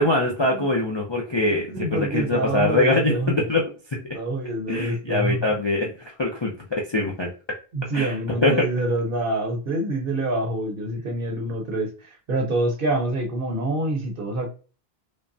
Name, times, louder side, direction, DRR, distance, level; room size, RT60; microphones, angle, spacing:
voice 1, 0.0-3.6 4.7-5.9 6.2-7.3 7.9-8.6, left 2 dB, 35° left, -2 dB, 0.5 m, -23 dB
voice 2, 1.4-3.4 4.1-5.4 7.7-14.5, right 1 dB, 60° right, 2 dB, 1.1 m, -26 dB
5.2 x 2.1 x 2.6 m, 0.35 s
omnidirectional pair, 1.0 m